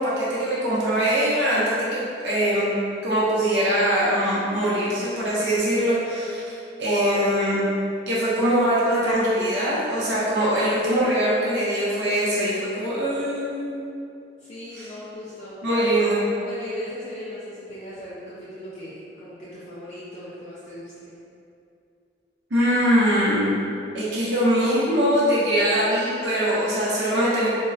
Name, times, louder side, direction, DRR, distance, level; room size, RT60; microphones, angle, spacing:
voice 1, 0.0-2.7 3.0-7.6 8.1-13.9 14.8-14.9 15.6-16.2 22.5-23.5 23.9-27.5, equal, 75° right, -8 dB, 0.7 m, -22 dB
voice 2, 14.4-15.9 16.4-21.1, left 1 dB, 40° left, -9 dB, 0.4 m, -38 dB
3.6 x 2.0 x 2.4 m, 2.6 s
head